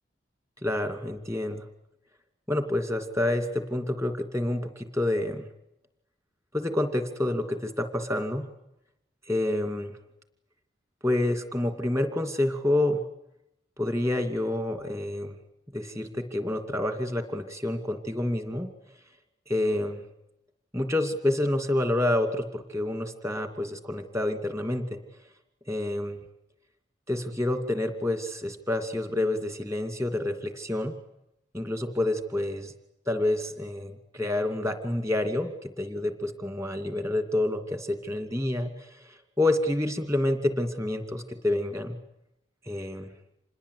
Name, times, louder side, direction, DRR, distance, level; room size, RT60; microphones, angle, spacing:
voice 1, 0.6-1.6 2.5-5.4 6.5-8.5 9.3-9.9 11.0-13.0 13.8-15.4 15.7-18.7 19.5-20.0 20.7-25.0 25.7-26.2 27.1-31.0 31.5-32.7 33.1-42.0 42.7-43.1, left 1 dB, 15° right, 8 dB, 2.6 m, -28 dB
27.5 x 21.0 x 8.5 m, 0.81 s
head